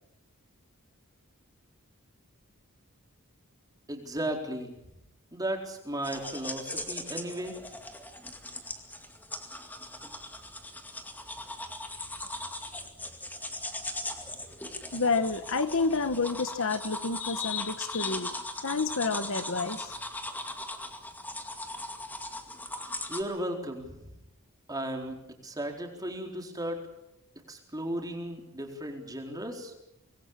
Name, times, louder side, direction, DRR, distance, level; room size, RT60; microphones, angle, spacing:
voice 1, 3.9-4.7 5.3-7.6 23.1-24.1 24.7-25.2 25.4-26.8 27.5-29.7, right 1 dB, 15° right, 2 dB, 4.2 m, -35 dB
sound 1, 6.0-23.2, left 1 dB, 10° left, 2.2 m, -39 dB
voice 2, 14.9-18.3 18.6-20.0, left 4 dB, 60° left, 11 dB, 1.2 m, -29 dB
25.5 x 21.0 x 7.4 m, 0.88 s
head